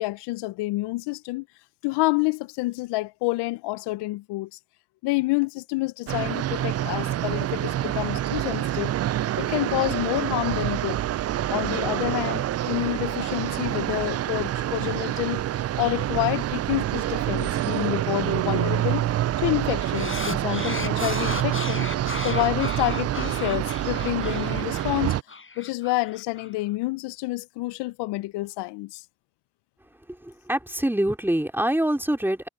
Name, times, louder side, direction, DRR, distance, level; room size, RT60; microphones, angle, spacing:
voice 1, 0.0-1.4 1.8-4.6 5.0-8.9 9.4-11.0 11.5-15.4 15.8-19.1 19.4-21.9 22.2-25.1 25.6-29.0, left 21 dB, 80° left, 0.6 m, -28 dB
sound 1, 6.1-25.2, right 12 dB, 40° right, 0.4 m, -27 dB
sound 2, 19.9-26.5, left 4 dB, 30° left, 6.1 m, -36 dB
voice 2, 30.2-32.5, right 1 dB, 5° right, 3.2 m, -25 dB
supercardioid pair, 65°, 41 cm